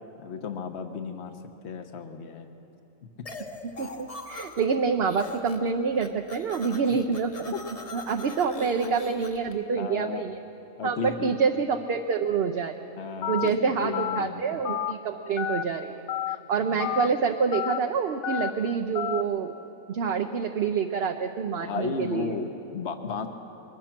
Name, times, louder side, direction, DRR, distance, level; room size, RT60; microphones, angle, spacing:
voice 1, 0.2-1.4 1.6-2.5 7.5-7.6 8.8-9.0 9.8-10.3 10.8-11.3 13.0-14.5 16.7-16.9 21.6-23.3, left 5 dB, 55° left, 6 dB, 1.3 m, -34 dB
sound 1, 3.3-4.8 5.0-5.7 6.0-9.5, left 3 dB, 30° left, 1.0 m, -42 dB
voice 2, 3.6-7.5 7.9-10.4 10.8-12.8 13.3-15.9 16.3-19.5 19.9-22.3, right 5 dB, 55° right, 4 dB, 0.9 m, -27 dB
Telephone, 13.2-13.5 13.9-14.2 14.6-14.9 15.4-15.6 16.1-16.4 16.8-17.1 17.5-17.8 18.2-18.5 18.9-19.2, left 11 dB, 85° left, 1.2 m, -29 dB
22.5 x 20.5 x 6.0 m, 2.9 s
omnidirectional pair, 1.4 m